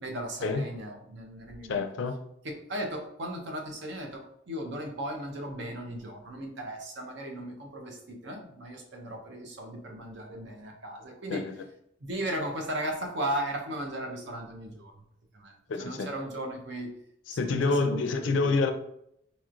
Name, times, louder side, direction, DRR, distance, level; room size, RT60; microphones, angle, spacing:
voice 1, 0.0-1.8 2.4-11.4 12.0-14.9 15.3-15.5 15.8-16.9 17.4-18.5, right 1 dB, 65° right, 2 dB, 0.8 m, -36 dB
voice 2, 1.7-2.2 11.3-11.5 15.7-16.1 17.3-18.7, left 3 dB, 70° left, 7 dB, 0.4 m, -27 dB
4.1 x 3.0 x 2.5 m, 0.73 s
head